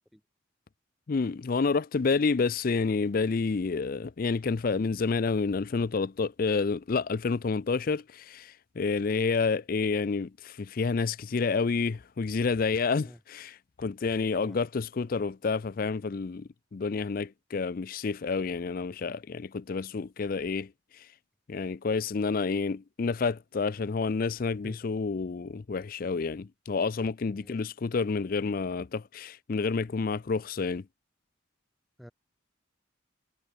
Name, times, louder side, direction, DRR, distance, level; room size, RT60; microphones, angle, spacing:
voice 1, 0.1-0.2 13.1-13.2 14.3-14.6 24.6-24.8 27.4-27.6 32.0-32.1, equal, ahead, 0.7 m, -48 dB
voice 2, 1.1-20.7 21.5-30.8, left 4 dB, 45° left, 0.4 m, -29 dB
head